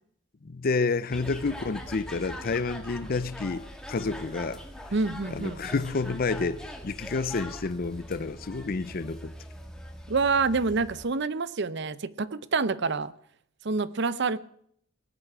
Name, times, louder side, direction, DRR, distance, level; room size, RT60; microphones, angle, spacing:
voice 1, 0.4-4.9 5.3-9.3, left 4 dB, 50° left, 0.6 m, -30 dB
sound 1, 1.1-11.0, equal, 5° left, 1.8 m, -42 dB
voice 2, 4.9-5.6 10.1-13.1 13.6-14.4, right 4 dB, 60° right, 0.7 m, -27 dB
18.5 x 8.3 x 8.8 m
head